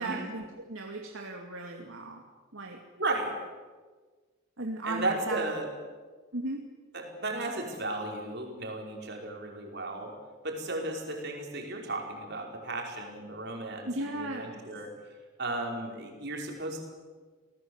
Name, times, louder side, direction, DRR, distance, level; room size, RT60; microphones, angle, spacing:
voice 1, 0.0-2.2 2.5-2.8 4.6-5.5 6.3-6.6 13.9-14.6, right 2 dB, 65° right, 2 dB, 2.4 m, -36 dB
voice 2, 3.0-3.4 4.8-5.7 6.9-10.1 10.4-14.9 15.4-16.8, right 2 dB, 50° right, 1 dB, 5.3 m, -34 dB
29.0 x 19.5 x 8.1 m, 1.4 s
head